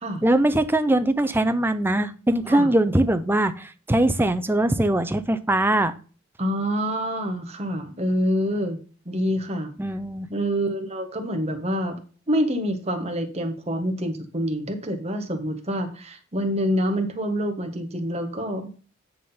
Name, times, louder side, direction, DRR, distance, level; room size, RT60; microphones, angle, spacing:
voice 1, 0.2-5.9 9.8-10.3, right 1 dB, 10° right, 10 dB, 0.6 m, -21 dB
voice 2, 6.4-8.8 9.0-9.7 10.3-12.0 12.3-18.7, equal, 30° right, 5 dB, 1.5 m, -26 dB
9.5 x 3.8 x 5.5 m, 0.37 s
head